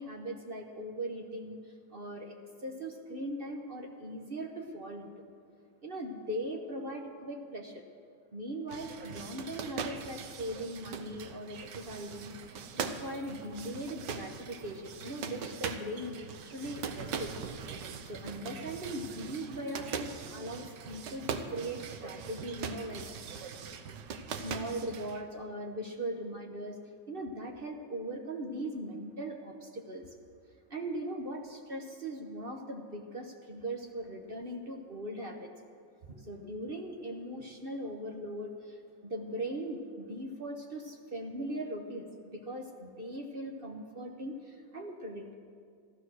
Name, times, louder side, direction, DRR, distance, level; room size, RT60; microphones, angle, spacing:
voice 1, 0.0-5.3 5.8-7.8 8.3-17.4 18.0-23.0 24.3-26.8 27.1-30.1 30.7-35.5 36.1-45.3, right 1 dB, 35° right, 2 dB, 1.1 m, -40 dB
sound 1, 8.7-25.2, right 6 dB, 70° right, 1.4 m, -41 dB
15.0 x 12.5 x 6.3 m, 2.2 s
omnidirectional pair, 2.0 m